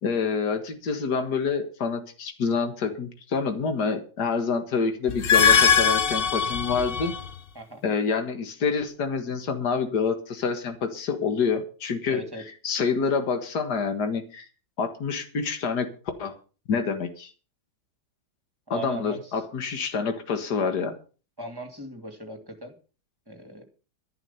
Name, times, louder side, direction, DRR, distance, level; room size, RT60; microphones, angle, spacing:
voice 1, 0.0-7.1 7.8-12.2 12.6-14.5 14.8-15.9 16.2-16.3 16.7-17.3 18.7-20.9, left 5 dB, 75° left, 7 dB, 2.1 m, -27 dB
sound 1, 5.1-7.3, left 7 dB, 50° left, 0.7 m, -21 dB
voice 2, 12.1-12.4 18.7-19.4 21.4-22.7 23.3-23.6, right 1 dB, 15° right, 5 dB, 2.2 m, -38 dB
11.5 x 11.0 x 5.7 m, 0.36 s
omnidirectional pair, 1.8 m